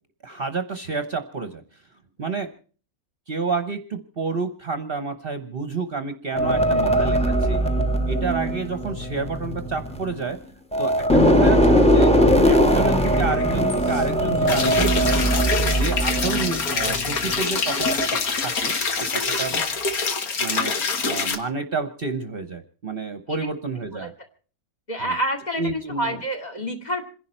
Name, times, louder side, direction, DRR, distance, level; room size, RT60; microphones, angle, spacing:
voice 1, 0.2-1.6 2.2-2.5 3.3-7.6 8.1-10.4 10.8-12.1 12.4-15.2 15.7-19.6 20.4-20.7 21.0-24.1 25.0-25.1 25.6-26.2, right 4 dB, 45° right, 9 dB, 1.1 m, -29 dB
sound 1, 6.3-10.4 10.7-17.4 17.8-18.1, equal, 5° left, 1.2 m, -20 dB
sound 2, 13.0-20.0, left 1 dB, 55° left, 2.5 m, -42 dB
sound 3, 14.5-21.4, left 4 dB, 75° left, 1.9 m, -25 dB
voice 2, 24.9-27.0, equal, 30° left, 5 dB, 2.5 m, -28 dB
27.5 x 11.0 x 4.3 m, 0.42 s
omnidirectional pair, 1.5 m